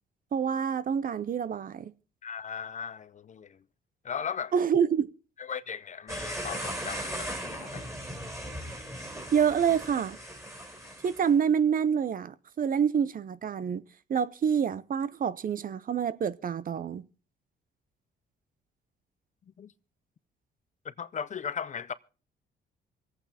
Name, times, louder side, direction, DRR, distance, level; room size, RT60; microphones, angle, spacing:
voice 1, 0.3-1.9 4.5-5.1 9.3-10.2 11.0-13.8 14.1-17.0, right 7 dB, 45° right, 0.6 m, -27 dB
voice 2, 2.2-3.6 4.0-4.5 5.4-7.8 19.6-19.7 20.8-21.9, left 7 dB, 40° left, 0.5 m, -37 dB
sound 1, 6.1-11.3, equal, 15° right, 3.6 m, -38 dB
26.0 x 8.7 x 2.8 m
cardioid pair, 90°, 20 cm